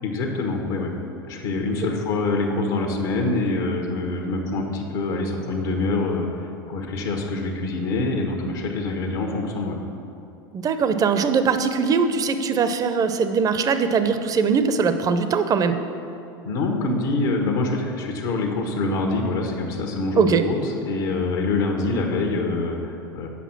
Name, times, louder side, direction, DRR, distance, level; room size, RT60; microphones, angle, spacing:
voice 1, 0.0-0.9 1.3-9.8 16.4-23.3, left 3 dB, 70° left, 2 dB, 1.2 m, -25 dB
voice 2, 10.5-15.8 20.2-20.4, right 5 dB, 30° right, 10 dB, 0.6 m, -21 dB
8.4 x 5.4 x 5.9 m, 2.7 s
hypercardioid pair, 90°, 12 cm